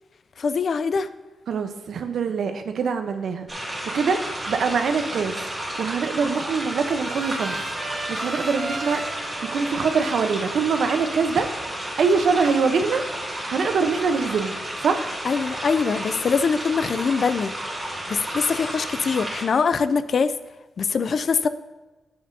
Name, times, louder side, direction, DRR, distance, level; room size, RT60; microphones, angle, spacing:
voice 1, 0.4-1.1 15.3-17.5 18.1-20.3 20.8-21.5, left 5 dB, 50° left, 13 dB, 0.4 m, -23 dB
voice 2, 1.5-3.5 3.9-4.2 4.5-5.3 5.8-7.6 8.1-9.0 9.5-11.5 12.0-13.0 13.5-14.5 14.8-15.1, right 5 dB, 75° right, 7 dB, 0.8 m, -23 dB
sound 1, 3.5-19.4, right 1 dB, 20° right, 2.7 m, -32 dB
Trumpet, 6.2-12.0, right 2 dB, 35° right, 1.3 m, -38 dB
11.0 x 7.8 x 2.7 m, 1.2 s
wide cardioid pair, 150°, 0 cm